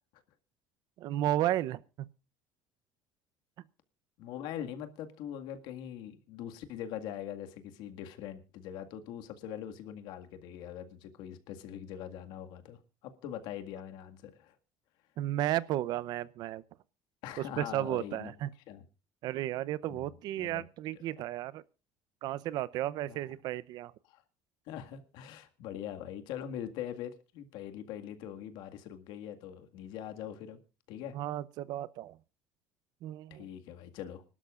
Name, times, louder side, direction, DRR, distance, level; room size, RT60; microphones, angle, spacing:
voice 1, 1.0-2.1 15.2-16.6 17.6-18.5 19.2-21.6 22.2-23.9 31.1-32.2 33.0-33.5, right 13 dB, 65° right, 0.7 m, -33 dB
voice 2, 4.2-14.5 17.2-18.3 18.7-18.8 19.9-20.6 23.0-23.2 24.1-24.2 24.7-30.6 30.9-31.2 33.3-34.2, left 10 dB, 75° left, 1.9 m, -42 dB
25.5 x 12.5 x 2.5 m
cardioid pair, 120°, 8 cm